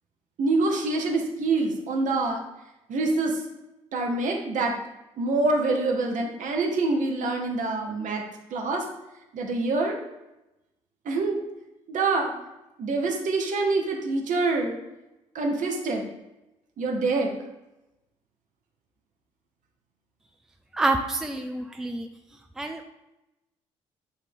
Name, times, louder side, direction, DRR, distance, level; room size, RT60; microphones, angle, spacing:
voice 1, 0.4-2.4 2.9-3.4 3.9-4.7 5.2-8.2 8.5-8.8 9.3-10.0 11.0-11.4 11.9-12.3 12.8-14.7 15.3-16.0 16.8-17.3, right 3 dB, 50° right, 1 dB, 1.1 m, -25 dB
voice 2, 20.7-22.1 22.6-22.8, right 2 dB, 5° right, 5 dB, 0.5 m, -27 dB
8.2 x 3.2 x 3.7 m, 0.95 s
figure-of-eight pair, 45°, 16 cm